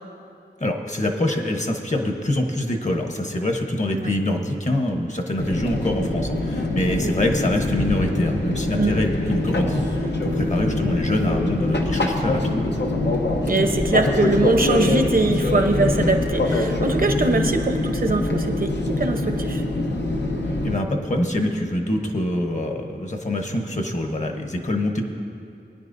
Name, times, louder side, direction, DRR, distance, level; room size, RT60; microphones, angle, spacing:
voice 1, 0.6-12.6 20.6-25.0, left 1 dB, 45° left, 3 dB, 1.1 m, -25 dB
Fixed-wing aircraft airplane, 5.4-20.8, left 2 dB, 80° left, 0.9 m, -24 dB
voice 2, 13.4-19.6, right 2 dB, 55° right, 5 dB, 0.9 m, -22 dB
20.5 x 9.9 x 2.7 m, 2.5 s
wide cardioid pair, 70°, 18 cm